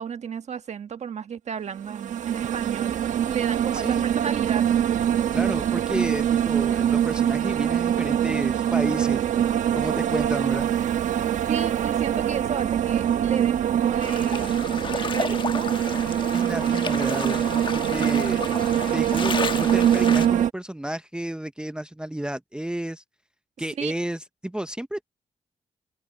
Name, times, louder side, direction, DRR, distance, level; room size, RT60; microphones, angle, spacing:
voice 1, 0.0-4.7 11.5-15.7 23.8-23.9, right 7 dB, 65° right, 1.4 m, -33 dB
sound 1, 1.8-20.5, right 10 dB, 80° right, 1.2 m, -23 dB
voice 2, 3.7-4.1 5.3-9.2 9.8-10.7 16.3-18.4 18.9-23.0 23.6-25.0, right 1 dB, 5° right, 0.8 m, -32 dB
sound 2, 14.0-20.3, left 4 dB, 40° left, 1.4 m, -32 dB
open air
cardioid pair, 70°, 13 cm